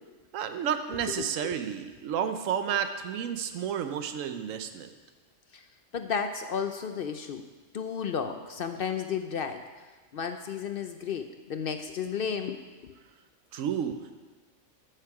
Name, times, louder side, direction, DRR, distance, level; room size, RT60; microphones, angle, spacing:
voice 1, 0.3-4.9 13.5-14.1, right 8 dB, 85° right, 8 dB, 1.0 m, -31 dB
voice 2, 5.9-7.4 7.7-9.6 10.1-12.6, left 6 dB, 60° left, 8 dB, 0.6 m, -32 dB
13.5 x 6.6 x 4.8 m, 1.3 s
omnidirectional pair, 1.3 m